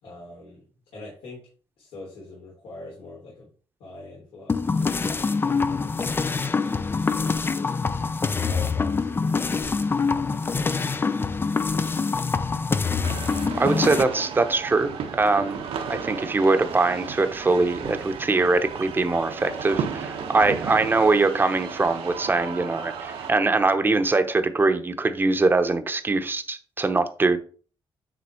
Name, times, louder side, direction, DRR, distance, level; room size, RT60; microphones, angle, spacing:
voice 1, 0.0-0.6 0.9-1.5 1.8-3.5 3.8-7.8 8.5-9.6 10.1-11.0 11.6-12.1 20.4-20.7, left 2 dB, 85° left, 3.1 m, -44 dB
sound 1, 4.5-14.0, left 4 dB, 25° left, 0.4 m, -25 dB
sound 2, 9.6-13.1 13.3-13.4, left 3 dB, 60° left, 3.7 m, -48 dB
sound 3, 13.0-23.3, right 7 dB, 90° right, 1.3 m, -34 dB
voice 2, 13.6-27.4, right 3 dB, 20° right, 0.8 m, -22 dB
9.6 x 3.6 x 4.4 m
cardioid pair, 135°, 10 cm